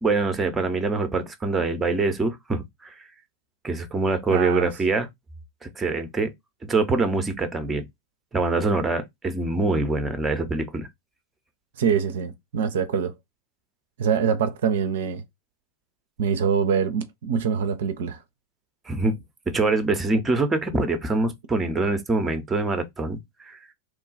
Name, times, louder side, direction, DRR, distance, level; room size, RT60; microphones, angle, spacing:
voice 1, 0.0-2.9 3.6-5.1 5.6-6.3 6.6-7.8 8.3-10.9 18.9-19.2 19.5-23.6, right 3 dB, 15° right, 0.6 m, -24 dB
voice 2, 4.3-4.7 11.8-13.1 14.0-15.2 16.2-18.2, right 7 dB, 60° right, 0.4 m, -24 dB
3.0 x 2.2 x 3.9 m
figure-of-eight pair, 90°, 0 cm